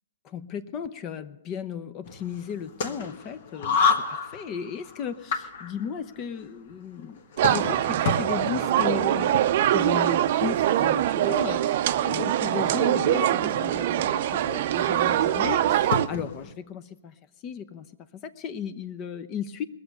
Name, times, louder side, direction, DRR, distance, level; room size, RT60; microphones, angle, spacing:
voice 1, 0.2-9.4 9.7-17.1 17.4-17.9 18.1-19.6, left 7 dB, 30° left, 12 dB, 0.7 m, -35 dB
sound 1, 2.0-16.5, left 5 dB, 55° left, 1.4 m, -32 dB
sound 2, 7.4-16.1, right 12 dB, 50° right, 0.6 m, -23 dB
20.5 x 7.0 x 6.7 m, 0.97 s
hypercardioid pair, 130°, 0 cm